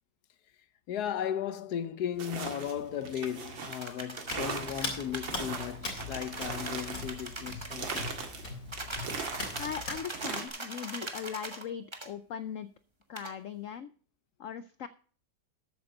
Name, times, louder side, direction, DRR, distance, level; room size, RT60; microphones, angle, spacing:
voice 1, 0.9-8.1, left 9 dB, 65° left, 1.2 m, -36 dB
sound 1, 2.2-10.5, right 5 dB, 80° right, 2.6 m, -40 dB
sound 2, 3.7-8.3 8.7-11.6 11.9-12.1 13.2-13.3, right 2 dB, 15° right, 1.2 m, -41 dB
Hands, 4.3-10.0, left 3 dB, 45° left, 3.6 m, -40 dB
voice 2, 9.6-12.7 13.1-13.9 14.4-14.9, left 8 dB, 85° left, 0.7 m, -39 dB
13.0 x 8.9 x 3.9 m
omnidirectional pair, 2.0 m